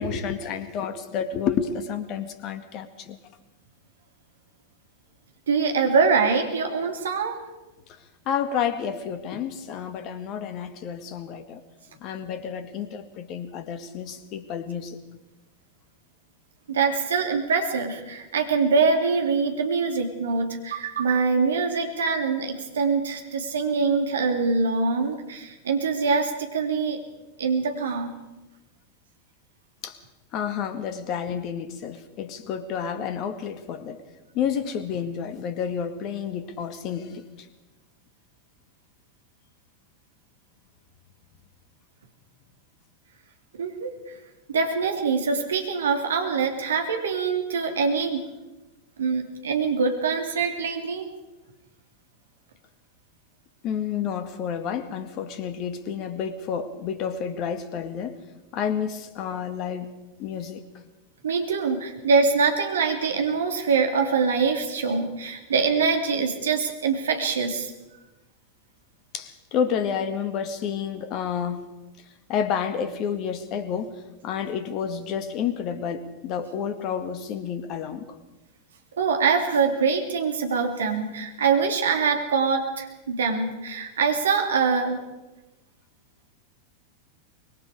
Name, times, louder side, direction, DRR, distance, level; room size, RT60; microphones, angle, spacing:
voice 1, 0.0-3.2 8.3-11.6 12.0-15.0 29.8-30.0 30.3-34.0 34.3-37.3 53.6-58.2 58.5-59.9 60.2-60.6 69.1-71.6 72.3-74.0 74.2-78.1, left 7 dB, 40° left, 10 dB, 2.0 m, -30 dB
voice 2, 5.5-7.4 16.7-27.0 27.4-28.1 43.5-44.1 44.5-48.2 49.0-51.1 61.2-67.7 79.0-85.0, right 5 dB, 65° right, 4 dB, 2.6 m, -24 dB
25.0 x 22.0 x 4.9 m, 1.1 s
figure-of-eight pair, 90°, 0 cm